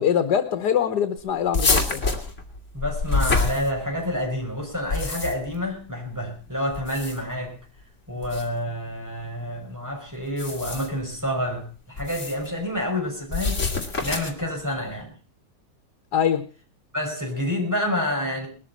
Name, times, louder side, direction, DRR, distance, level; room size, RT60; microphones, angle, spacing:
voice 1, 0.0-2.0 16.1-16.5, left 8 dB, 85° left, 9 dB, 1.8 m, -23 dB
sound 1, 1.5-4.2 4.7-5.6 6.7-7.4 8.2-8.5 10.3-11.0 12.0-12.5 13.3-14.5, left 3 dB, 45° left, 3.0 m, -26 dB
voice 2, 2.7-7.6 8.1-13.6 14.0-15.2 16.9-18.5, left 1 dB, 10° right, 1 dB, 5.8 m, -28 dB
21.0 x 13.5 x 4.2 m, 0.37 s
omnidirectional pair, 1.7 m